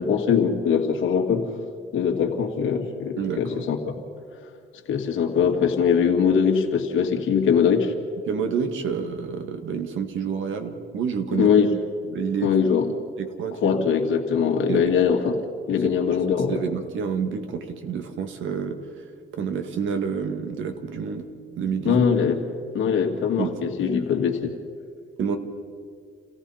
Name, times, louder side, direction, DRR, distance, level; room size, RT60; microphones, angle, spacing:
voice 1, 0.0-1.5 1.9-3.9 4.9-7.9 11.3-11.7 12.4-12.9 13.6-15.3 15.7-16.6 21.8-22.4 22.7-24.5, left 7 dB, 80° left, 3 dB, 2.3 m, -22 dB
voice 2, 3.2-3.6 8.3-11.5 12.1-12.5 13.2-13.9 14.7-14.9 15.7-16.2 16.5-19.1 19.3-21.3 21.6-22.0 23.4-24.0 25.2-25.4, right 6 dB, 75° right, 6 dB, 1.9 m, -29 dB
29.0 x 15.5 x 5.7 m, 2.2 s
cardioid pair, 90°, 20 cm